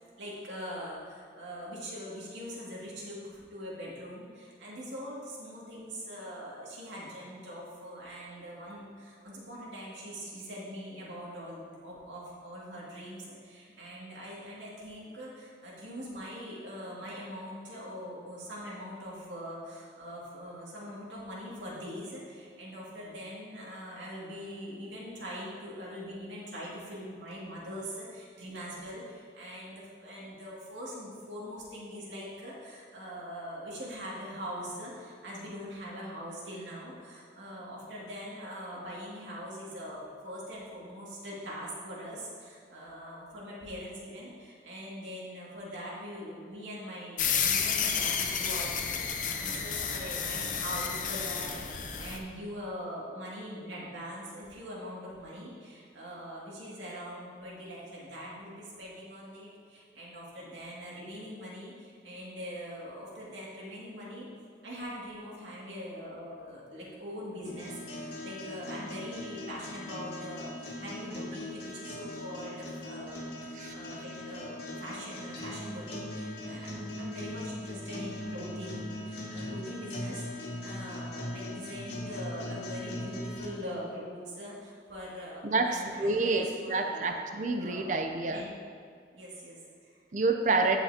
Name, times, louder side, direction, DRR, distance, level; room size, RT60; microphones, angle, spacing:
voice 1, 0.2-64.3 64.6-87.1 87.5-88.0 88.3-88.5 89.1-90.0, equal, 90° right, -6 dB, 2.3 m, -42 dB
sound 1, 47.2-52.2, left 7 dB, 45° left, 0.7 m, -31 dB
sound 2, 67.4-83.5, left 1 dB, 80° left, 2.0 m, -40 dB
voice 2, 85.4-88.4 90.1-90.8, right 3 dB, 45° right, 4 dB, 0.5 m, -28 dB
15.5 x 5.8 x 2.8 m, 2.2 s
head